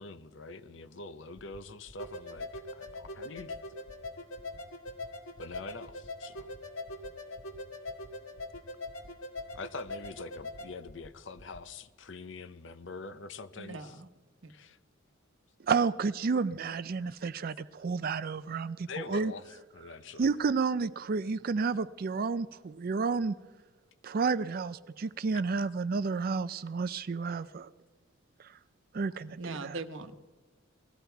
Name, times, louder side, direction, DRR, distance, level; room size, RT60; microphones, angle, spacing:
voice 1, 0.0-3.6 5.4-6.5 9.5-14.0 14.5-14.8 17.0-17.1 18.9-20.3, left 3 dB, 60° left, 12 dB, 0.8 m, -44 dB
sound 1, 1.4-1.6 1.9-2.1 2.4-2.6 2.9-3.1 3.4-3.6 3.9-4.1 4.4-4.6 4.9-5.1 5.4-5.6 5.9-6.1 6.4-6.6 6.9-7.1 7.4-7.6 7.9-8.1 8.4-8.6 8.9-9.1 9.4-9.6 9.9-10.1 10.4-10.6 10.9-11.1 11.4-11.6, equal, 35° left, 1.1 m, -52 dB
sound 2, 2.0-10.7, left 2 dB, 80° left, 1.7 m, -42 dB
voice 2, 13.6-14.1 14.4-14.5 29.4-30.2, right 3 dB, 65° right, 9 dB, 1.0 m, -40 dB
voice 3, 15.6-19.3 20.2-23.4 24.0-27.7 28.4-28.6 28.9-29.8, right 4 dB, 45° right, 15 dB, 0.4 m, -31 dB
19.0 x 14.0 x 4.6 m, 1.3 s
head